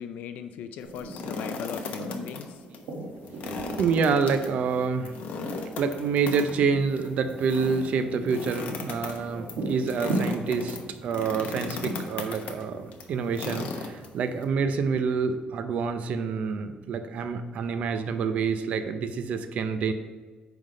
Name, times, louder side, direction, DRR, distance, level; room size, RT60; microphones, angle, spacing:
voice 1, 0.0-2.6 5.5-5.7, left 8 dB, 80° left, 9 dB, 0.4 m, -39 dB
sound 1, 0.8-2.4 2.7-2.8 3.2-14.4, left 4 dB, 60° left, 1.0 m, -37 dB
sound 2, 0.8-13.9, right 2 dB, 80° right, 1.3 m, -39 dB
voice 2, 3.3-5.2 5.5-19.9, right 5 dB, 55° right, 9 dB, 0.6 m, -27 dB
9.3 x 3.6 x 5.0 m, 1.4 s
cardioid pair, 165°, 3 cm